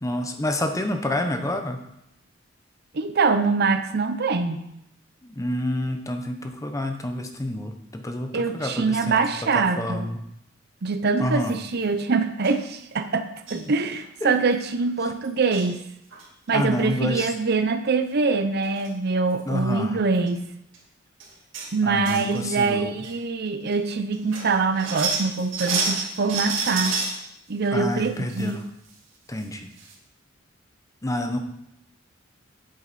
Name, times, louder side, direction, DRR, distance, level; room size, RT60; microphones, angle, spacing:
voice 1, 0.0-1.8 5.2-9.2 9.5-10.2 11.2-11.6 14.2-14.3 16.5-17.3 19.5-20.0 21.8-22.9 27.7-28.6 29.3-29.7 31.0-31.4, left 1 dB, 15° left, 5 dB, 0.8 m, -28 dB
voice 2, 2.9-4.6 8.3-10.1 10.8-15.8 16.5-20.4 21.7-26.9 27.5-28.6, right 4 dB, 55° right, 9 dB, 0.7 m, -24 dB
sound 1, 11.4-11.8 12.4-12.6 13.5-13.7 14.0-14.1 14.3-14.5 15.2-15.7 16.1-16.5 18.3-18.4 18.6-18.9 19.3-19.4 20.1-20.3 20.7-20.8 21.2-21.7 22.0-22.7 23.0-23.1 23.7-23.8 24.1-27.2 27.6-28.5 28.8-28.9 29.4-29.5 29.8-29.9, right 4 dB, 85° right, 2.3 m, -30 dB
8.3 x 7.7 x 4.2 m, 0.81 s
head